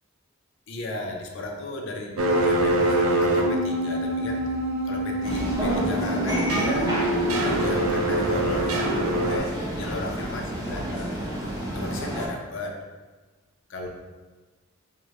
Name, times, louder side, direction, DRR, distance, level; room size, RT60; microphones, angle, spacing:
voice 1, 0.7-2.2 2.4-4.4 4.8-7.0 7.4-8.9 9.2-11.3 11.7-12.8 13.7-13.9, left 2 dB, 60° left, 1 dB, 0.5 m, -35 dB
sound 1, 2.2-9.4, right 1 dB, 85° right, 0.5 m, -24 dB
sound 2, 5.2-12.3, right 1 dB, 15° right, 0.7 m, -30 dB
4.7 x 2.1 x 3.1 m, 1.3 s
head